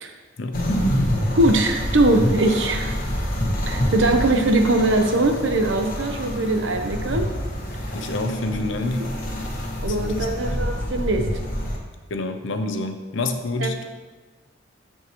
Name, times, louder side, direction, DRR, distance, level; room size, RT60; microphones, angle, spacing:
voice 1, 0.4-0.7 7.9-9.2 10.0-10.5 12.1-13.8, left 2 dB, 70° left, 7 dB, 0.7 m, -28 dB
sound 1, 0.5-11.8, equal, 45° left, 1.1 m, -27 dB
voice 2, 1.3-2.9 3.7-7.3 9.8-11.2 13.6-13.7, right 2 dB, 65° right, 5 dB, 0.8 m, -21 dB
12.5 x 4.7 x 3.0 m, 1.3 s
head